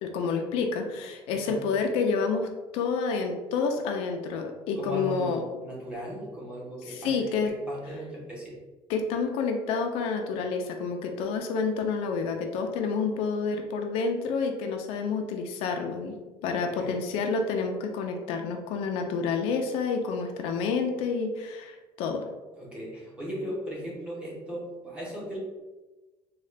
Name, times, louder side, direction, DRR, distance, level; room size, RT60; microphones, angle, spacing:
voice 1, 0.0-5.4 6.9-7.5 8.9-16.2 16.4-22.3, left 5 dB, 75° left, 4 dB, 0.5 m, -29 dB
voice 2, 1.3-1.6 4.7-8.6 16.8-17.0 22.6-25.4, equal, 10° right, -5 dB, 0.9 m, -37 dB
3.6 x 2.3 x 3.2 m, 1.2 s
cardioid pair, 175°, 10 cm